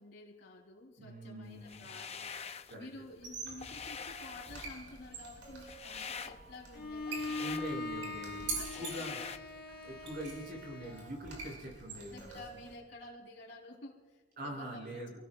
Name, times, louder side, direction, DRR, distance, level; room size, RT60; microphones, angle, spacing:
voice 1, 0.0-2.5 2.7-7.6 8.5-9.0 12.1-15.2, left 2 dB, 70° left, -1 dB, 4.0 m, -51 dB
voice 2, 1.0-1.9 2.7-2.9 7.4-9.2 9.8-12.3 14.4-15.2, equal, 55° right, -1 dB, 6.3 m, -43 dB
sound 1, 1.6-2.8 3.2-9.4, left 6 dB, 35° left, 0.7 m, -45 dB
Squeak, 3.1-12.7, right 3 dB, 85° right, 5.2 m, -46 dB
Bowed string instrument, 6.7-11.2, left 2 dB, 55° left, 1.4 m, -41 dB
28.5 x 17.0 x 2.4 m, 1.2 s
head